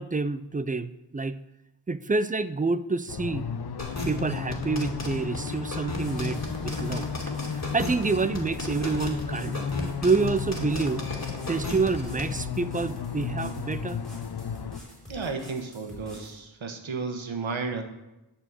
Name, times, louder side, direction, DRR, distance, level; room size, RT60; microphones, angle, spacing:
voice 1, 0.0-1.4 1.9-3.5 4.0-9.7 10.0-11.1 11.5-14.0, right 4 dB, 20° right, 14 dB, 0.3 m, -28 dB
sound 1, 3.1-14.8, left 6 dB, 55° left, 0.7 m, -34 dB
sound 2, 3.8-12.3, left 1 dB, 35° left, 2.1 m, -35 dB
sound 3, 5.7-16.4, right 1 dB, ahead, 4.3 m, -47 dB
voice 2, 15.1-17.8, right 4 dB, 75° right, 5 dB, 1.3 m, -33 dB
11.0 x 4.3 x 7.5 m, 0.97 s
wide cardioid pair, 70°, 47 cm